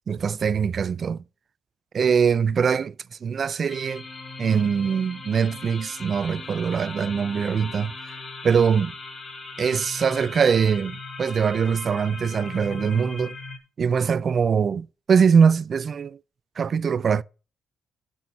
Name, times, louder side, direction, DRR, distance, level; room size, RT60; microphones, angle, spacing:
voice 1, 0.1-1.2 1.9-4.0 4.4-7.9 8.4-8.9 9.6-13.4 13.8-16.2 16.6-17.2, right 6 dB, 50° right, 0.3 m, -22 dB
sound 1, 3.7-13.6, left 3 dB, 30° left, 2.1 m, -39 dB
6.8 x 6.1 x 7.3 m
cardioid pair, 90°, 0 cm